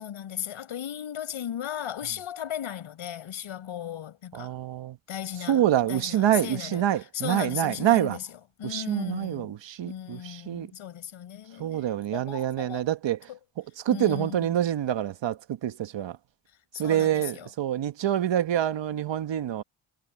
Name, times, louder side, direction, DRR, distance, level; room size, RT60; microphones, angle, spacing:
voice 1, 0.0-4.5 5.1-5.6 5.9-6.8 7.1-8.3 8.6-9.6 9.9-12.9 13.3-13.4 13.9-14.5 16.7-17.5, left 10 dB, 75° left, 6.7 m, -36 dB
voice 2, 4.3-5.0 5.5-8.2 8.6-10.7 11.6-13.3 13.8-16.2 16.8-19.6, right 11 dB, 65° right, 1.4 m, -26 dB
cardioid pair, 100°, 48 cm